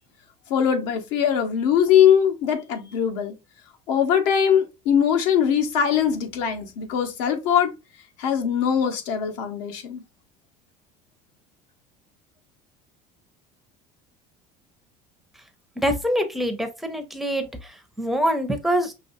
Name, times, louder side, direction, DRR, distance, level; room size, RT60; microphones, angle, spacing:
voice 1, 0.5-3.3 3.9-7.7 8.2-10.0, left 8 dB, 75° left, 1.2 m, -21 dB
voice 2, 15.8-17.5 18.0-18.9, equal, ahead, 0.5 m, -24 dB
5.5 x 3.2 x 2.6 m
cardioid pair, 180°, 18 cm